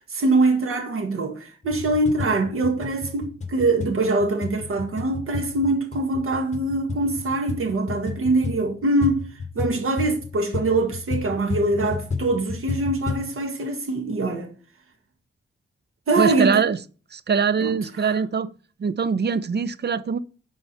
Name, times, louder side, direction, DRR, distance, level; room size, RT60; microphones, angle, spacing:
voice 1, 0.1-9.2 9.5-14.5 16.1-16.6 17.6-18.1, right 2 dB, 90° right, 1.7 m, -23 dB
sound 1, 1.6-13.3, left 4 dB, 35° left, 1.7 m, -32 dB
voice 2, 16.2-16.8 17.1-18.5 18.8-20.2, right 6 dB, 50° right, 0.6 m, -22 dB
11.5 x 4.7 x 4.3 m
wide cardioid pair, 100°, 21 cm